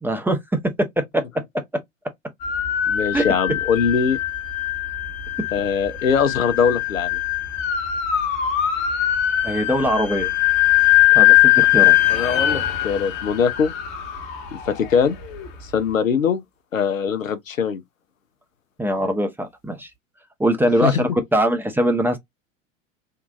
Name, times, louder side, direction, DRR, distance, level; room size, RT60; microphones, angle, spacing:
voice 1, 0.0-0.4 0.8-1.6 3.1-3.2 9.4-10.3 11.1-12.0 18.8-19.9 20.4-22.2, equal, 5° right, 0.6 m, -22 dB
sound 1, 2.4-15.5, left 13 dB, 45° left, 1.1 m, -21 dB
voice 2, 2.9-4.2 5.5-7.2 12.1-13.7 14.7-15.2 15.6-16.4 16.7-17.8 20.8-21.1, left 6 dB, 85° left, 0.6 m, -21 dB
3.6 x 2.3 x 2.3 m
figure-of-eight pair, 85°, 39 cm